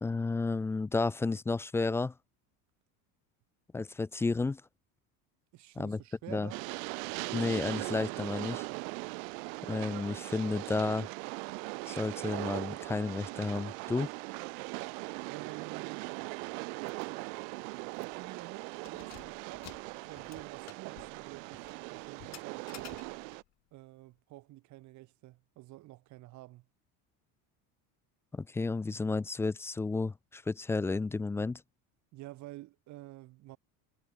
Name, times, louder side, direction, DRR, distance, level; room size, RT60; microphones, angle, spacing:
voice 1, 0.0-2.1 3.7-4.6 5.8-6.0 6.3-6.5 7.3-8.7 9.7-11.1 11.9-14.1 28.3-31.6, left 3 dB, 5° left, 0.4 m, -32 dB
voice 2, 5.5-6.7 8.7-8.8 15.3-16.0 18.2-19.8 20.1-23.0 23.7-26.7 32.1-33.6, right 18 dB, 45° right, 3.3 m, -49 dB
Train, 6.5-23.4, right 37 dB, 75° right, 0.7 m, -40 dB
Keys jangling, 16.9-17.1 17.4-17.5 17.9-18.3 18.7-23.5, left 15 dB, 40° left, 6.4 m, -53 dB
cardioid pair, 175°, 41 cm